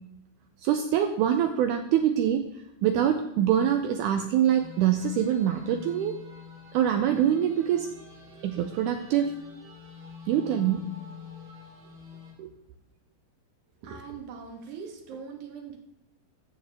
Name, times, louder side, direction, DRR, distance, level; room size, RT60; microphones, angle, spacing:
voice 1, 0.6-2.5 2.8-6.2 6.7-7.9 8.4-9.3 10.3-10.9 12.4-12.5, right 10 dB, 90° right, 7 dB, 1.8 m, -24 dB
sound 1, 4.6-12.3, left 5 dB, 40° right, 2.3 m, -46 dB
voice 2, 13.8-15.8, right 6 dB, 65° right, 3 dB, 2.4 m, -41 dB
13.5 x 7.3 x 3.4 m, 0.88 s
omnidirectional pair, 4.2 m